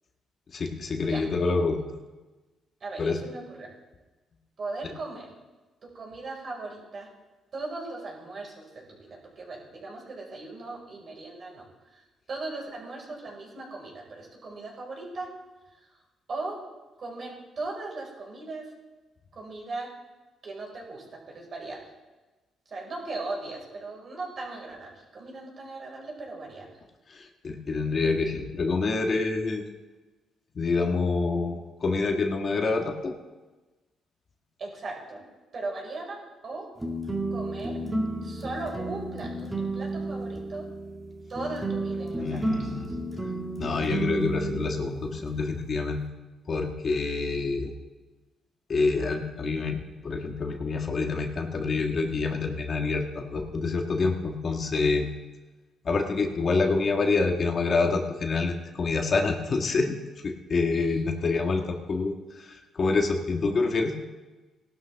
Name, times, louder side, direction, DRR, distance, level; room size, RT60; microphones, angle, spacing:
voice 1, 0.5-1.8 3.0-3.2 27.1-29.6 30.5-33.1 42.2-42.9 43.6-46.0 46.5-47.7 48.7-55.1 55.8-60.0 60.2-63.9, left 3 dB, 45° left, 3 dB, 1.6 m, -27 dB
voice 2, 2.8-3.7 4.6-5.3 5.8-7.1 7.5-11.6 11.9-15.3 15.7-15.9 16.3-16.6 17.0-18.6 19.3-19.9 20.4-21.9 22.7-26.7 34.6-35.2 35.5-36.7 37.3-37.8 38.2-40.6 41.3-42.9 60.7-61.0, right 3 dB, 50° right, -2 dB, 5.2 m, -38 dB
sound 1, 36.8-46.1, right 2 dB, 15° right, 2.1 m, -32 dB
18.0 x 12.0 x 3.6 m, 1.2 s
cardioid pair, 90°, 0 cm